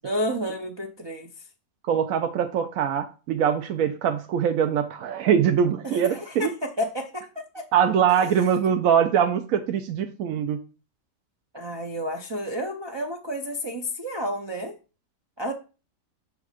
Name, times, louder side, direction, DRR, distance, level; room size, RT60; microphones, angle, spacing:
voice 1, 0.0-1.5 5.8-7.6 8.1-8.3 11.5-14.8 15.4-15.5, equal, 35° right, 0 dB, 0.4 m, -31 dB
voice 2, 1.8-6.5 7.7-10.6, right 8 dB, 75° right, 6 dB, 1.0 m, -23 dB
7.2 x 3.4 x 4.9 m, 0.33 s
omnidirectional pair, 1.5 m